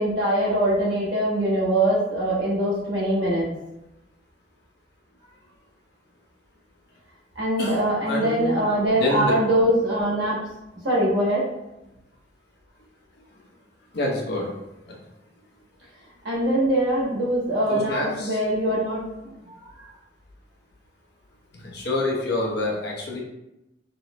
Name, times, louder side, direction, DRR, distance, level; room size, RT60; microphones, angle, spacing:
voice 1, 0.0-3.5 7.3-10.4 10.8-11.5 16.2-19.0 19.4-19.7, right 1 dB, 85° right, -6 dB, 1.2 m, -23 dB
voice 2, 7.6-8.6 9.0-9.3 13.9-14.5 14.9-15.0 17.7-18.4 21.6-23.2, left 2 dB, 65° left, -2 dB, 0.7 m, -27 dB
3.0 x 2.0 x 2.9 m, 0.91 s
head